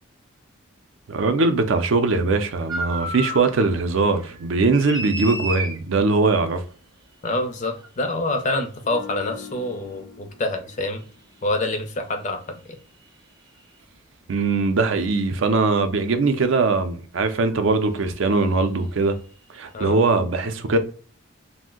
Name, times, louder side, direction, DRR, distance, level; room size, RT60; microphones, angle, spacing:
voice 1, 1.1-6.6 14.3-19.2 19.5-20.8, right 3 dB, 70° right, 0.4 m, -21 dB
sound 1, 2.7-3.7 4.0-5.8 7.8-7.9 10.7-10.8 13.6-13.7 15.4-15.5 17.3-17.6 17.8-18.0, right 1 dB, 20° right, 0.5 m, -31 dB
voice 2, 7.2-11.0 11.4-12.8 19.7-19.9, left 2 dB, 35° left, 0.5 m, -26 dB
sound 2, 8.8-12.1 12.4-12.7, left 6 dB, 80° left, 0.8 m, -44 dB
2.6 x 2.1 x 3.6 m
head